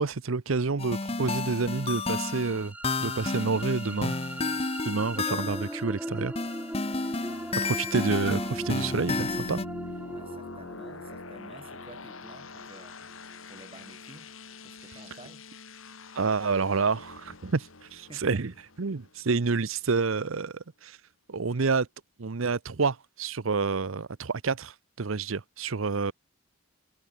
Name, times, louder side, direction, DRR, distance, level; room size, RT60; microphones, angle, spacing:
voice 1, 0.0-2.7 3.0-4.2 4.8-6.4 7.6-9.6 16.1-18.5 18.8-21.0 21.3-21.9 22.2-26.1, right 4 dB, 80° right, 0.8 m, -28 dB
sound 1, 0.8-5.8 6.4-9.6, left 3 dB, 30° left, 1.0 m, -31 dB
sound 2, 1.4-13.3, right 1 dB, 5° right, 0.9 m, -40 dB
sound 3, 7.2-19.9, left 2 dB, 80° left, 3.8 m, -45 dB
voice 2, 10.1-13.2 13.5-14.3 14.6-15.5 18.1-18.4, right 1 dB, 25° right, 7.6 m, -51 dB
head